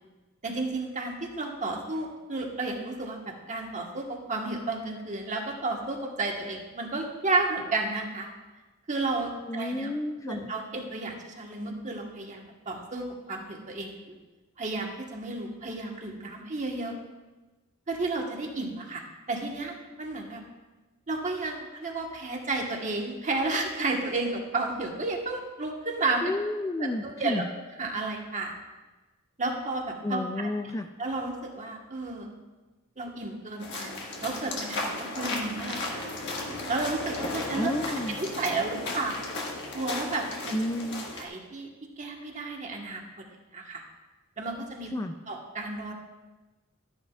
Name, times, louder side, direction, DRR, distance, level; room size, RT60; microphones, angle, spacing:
voice 1, 0.4-8.3 8.9-9.9 10.3-14.1 14.6-17.0 17.9-20.4 21.1-26.2 26.8-27.4 27.8-28.5 29.4-30.2 31.0-32.3 33.0-36.2 36.7-37.7 38.1-39.2 39.7-40.6 41.2-41.7 42.0-43.0 43.5-43.8 44.4-44.9 45.3-45.9, right 3 dB, 35° right, 1 dB, 1.3 m, -32 dB
voice 2, 9.5-10.5 26.2-27.5 30.0-30.9 37.5-38.2 40.5-41.1 44.9-45.1, left 1 dB, 15° left, 5 dB, 0.3 m, -31 dB
sound 1, 33.6-41.3, left 2 dB, 55° left, 1.6 m, -35 dB
13.0 x 9.8 x 2.4 m, 1.2 s
head